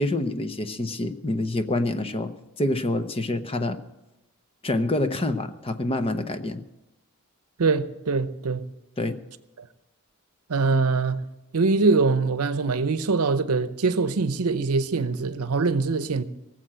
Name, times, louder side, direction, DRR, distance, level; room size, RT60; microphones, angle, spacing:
voice 1, 0.0-2.3 2.6-3.8 4.6-6.6 9.0-9.2, left 1 dB, 25° left, 0.7 m, -26 dB
voice 2, 7.6-8.6 10.5-11.2 11.5-16.2, right 4 dB, 80° right, 0.7 m, -23 dB
18.5 x 7.5 x 7.6 m
head